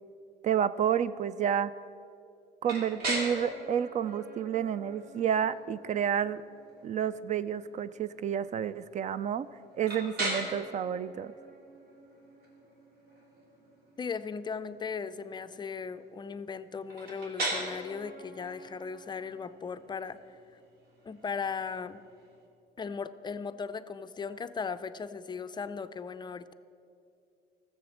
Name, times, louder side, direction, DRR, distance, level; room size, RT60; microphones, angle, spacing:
voice 1, 0.4-1.7 2.6-6.4 6.8-9.5 9.8-11.3, right 9 dB, 45° right, 16 dB, 0.4 m, -30 dB
sound 1, 2.6-22.4, right 1 dB, 65° right, 2.9 m, -41 dB
voice 2, 14.0-20.4 21.1-22.0 22.8-26.5, left 5 dB, 25° left, 12 dB, 0.4 m, -37 dB
13.5 x 7.0 x 7.2 m, 2.6 s
cardioid pair, 110°, 17 cm